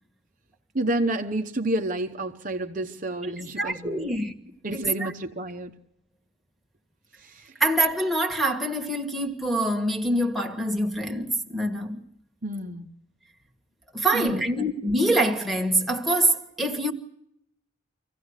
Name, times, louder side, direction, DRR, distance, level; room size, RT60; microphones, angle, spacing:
voice 1, 0.7-4.1 4.6-5.7 7.2-7.4 12.4-12.9 14.1-14.4, right 1 dB, 40° right, 1.0 m, -29 dB
voice 2, 3.6-4.3 4.7-5.1 7.6-12.0 13.9-16.9, right 1 dB, ahead, 1.7 m, -25 dB
25.5 x 16.0 x 8.1 m
head